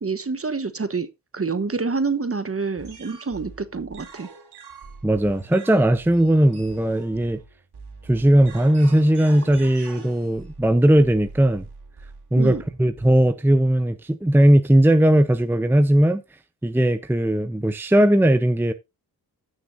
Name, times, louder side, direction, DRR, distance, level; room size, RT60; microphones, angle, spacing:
voice 1, 0.0-1.1 1.3-4.3 12.4-12.6, right 4 dB, 30° right, 1.1 m, -27 dB
sound 1, 2.8-13.3, right 4 dB, 60° right, 3.3 m, -44 dB
voice 2, 5.0-7.4 8.1-11.6 12.3-16.2 16.6-18.7, right 1 dB, 5° right, 0.8 m, -18 dB
16.0 x 6.4 x 2.7 m
supercardioid pair, 45°, 45 cm